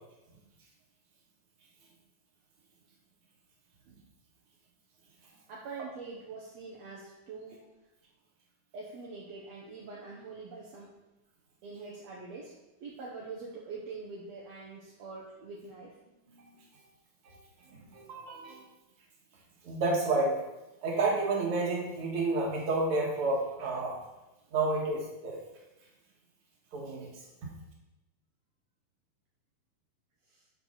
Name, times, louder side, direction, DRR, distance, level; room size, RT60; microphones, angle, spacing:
voice 1, 5.5-7.6 8.7-10.9 11.6-12.5 12.8-16.0 30.3-30.5, right 4 dB, 65° right, -4 dB, 1.7 m, -44 dB
voice 2, 17.9-18.6 19.6-20.4 20.8-24.0 24.5-25.4 26.7-27.1, right 2 dB, 50° right, -3 dB, 2.1 m, -30 dB
12.0 x 4.8 x 3.9 m, 1.0 s
omnidirectional pair, 4.3 m